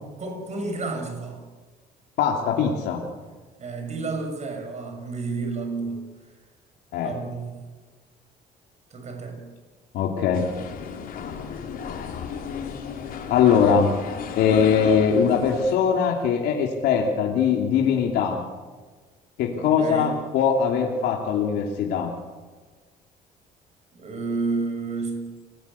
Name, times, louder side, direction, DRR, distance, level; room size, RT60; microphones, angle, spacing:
voice 1, 0.2-1.4 3.6-6.0 7.0-7.7 8.9-9.4 13.4-13.8 19.5-20.2 23.9-25.4, right 3 dB, 40° right, 5 dB, 6.7 m, -31 dB
voice 2, 2.2-3.0 6.9-7.1 9.9-10.5 13.3-13.9 14.4-18.4 19.4-22.1, left 7 dB, 85° left, 0 dB, 3.0 m, -21 dB
sound 1, 10.3-15.8, left 7 dB, 55° left, 4.6 m, -34 dB
29.5 x 19.0 x 8.6 m, 1.4 s
cardioid pair, 110°, 17 cm